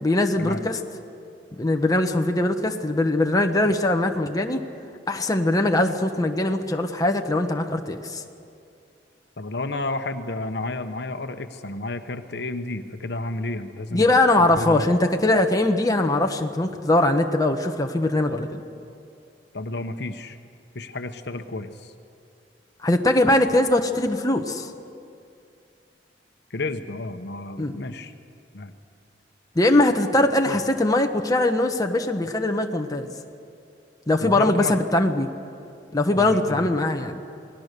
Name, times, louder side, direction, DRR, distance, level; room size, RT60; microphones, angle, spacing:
voice 1, 0.0-0.8 1.6-4.6 5.1-8.2 13.9-18.6 22.8-24.7 27.6-27.8 29.5-33.1 34.1-35.3 35.9-37.2, left 2 dB, 20° left, 4 dB, 1.2 m, -21 dB
voice 2, 9.4-14.2 14.5-14.9 19.5-20.4 20.7-21.9 26.5-28.1 28.5-28.7 30.5-30.6 34.2-34.8 36.1-36.7, left 2 dB, 65° left, 8 dB, 1.1 m, -31 dB
28.0 x 19.5 x 6.8 m, 2.5 s
head